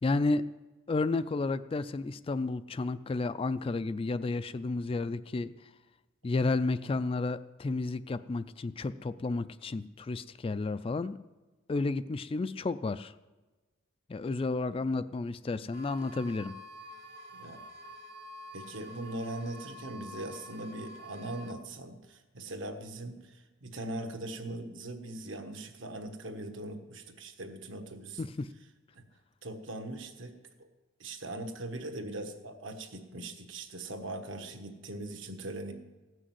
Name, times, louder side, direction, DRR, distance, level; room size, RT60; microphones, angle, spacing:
voice 1, 0.0-0.4 0.9-5.7 6.2-11.2 11.7-13.1 14.1-16.5 28.2-28.5, left 3 dB, 25° left, 14 dB, 0.3 m, -32 dB
sound 1, 15.7-21.5, equal, 50° right, 1.6 m, -48 dB
voice 2, 18.5-28.2 28.9-29.0 29.4-30.3 30.6-30.7 31.0-35.7, right 1 dB, 65° right, 6 dB, 1.4 m, -40 dB
16.0 x 6.4 x 7.7 m, 1.2 s
head